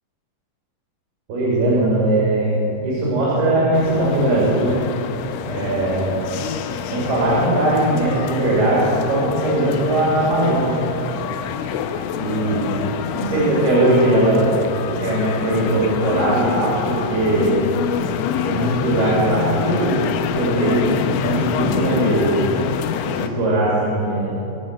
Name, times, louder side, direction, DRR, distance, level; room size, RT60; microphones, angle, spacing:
voice 1, 1.3-4.8 5.4-6.1 6.9-10.8 12.2-12.6 13.1-14.5 15.0-17.5 18.4-20.0 20.3-21.0 21.2-22.4 23.0-24.3, right 1 dB, 60° right, -6 dB, 4.8 m, -19 dB
sound 1, 3.7-23.3, left 8 dB, 85° left, 3.1 m, -26 dB
22.0 x 7.9 x 6.6 m, 2.9 s
omnidirectional pair, 5.3 m